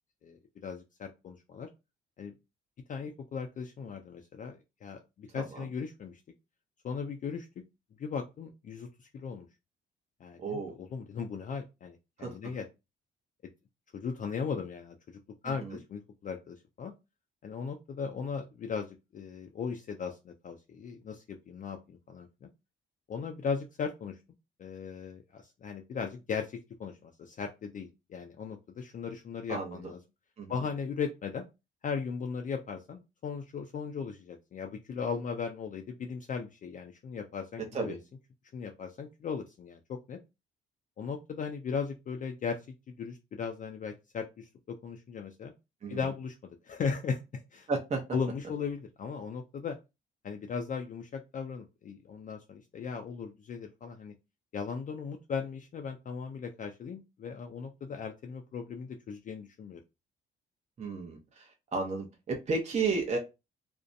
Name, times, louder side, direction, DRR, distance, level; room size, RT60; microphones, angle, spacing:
voice 1, 0.2-1.7 2.2-2.3 2.9-6.2 6.8-7.5 8.0-9.5 10.2-12.7 13.9-16.9 17.4-22.5 23.1-24.2 24.6-30.0 30.5-31.5 31.8-38.0 38.5-40.2 41.0-42.6 42.9-45.5 45.9-46.4 46.6-47.7 48.1-49.8 50.2-54.1 54.5-59.8, left 6 dB, 40° left, 4 dB, 0.4 m, -37 dB
voice 2, 5.3-5.6 10.4-10.8 12.2-12.4 15.4-15.8 29.5-29.8 30.4-30.5 37.7-38.0 45.8-46.0 47.7-48.0 60.8-63.2, right 4 dB, 35° right, 1 dB, 0.7 m, -33 dB
2.5 x 2.1 x 2.5 m, 0.25 s
cardioid pair, 90°, 20 cm